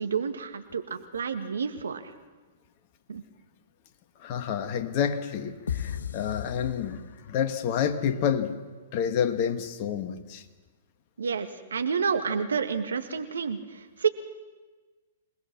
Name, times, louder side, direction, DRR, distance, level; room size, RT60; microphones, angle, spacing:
voice 1, 0.0-2.0 3.1-3.2 11.2-14.1, right 6 dB, 70° right, 8 dB, 1.9 m, -29 dB
voice 2, 4.2-8.6 8.9-10.4, left 8 dB, 40° left, 8 dB, 1.9 m, -29 dB
sound 1, 5.7-7.5, left 8 dB, 70° left, 1.1 m, -35 dB
27.0 x 19.5 x 6.1 m, 1.3 s
figure-of-eight pair, 110°, 0 cm